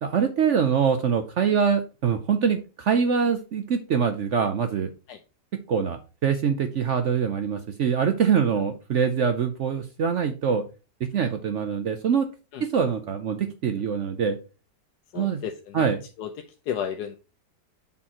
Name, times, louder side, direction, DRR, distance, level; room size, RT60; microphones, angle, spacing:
voice 1, 0.0-4.9 5.7-10.6 11.0-12.3 12.6-14.4 15.1-15.4 15.7-16.0, right 6 dB, 60° right, 8 dB, 0.8 m, -24 dB
voice 2, 15.1-15.9 16.2-16.3 16.7-17.2, left 9 dB, 70° left, 5 dB, 1.2 m, -32 dB
7.3 x 4.4 x 4.3 m, 0.31 s
omnidirectional pair, 1.8 m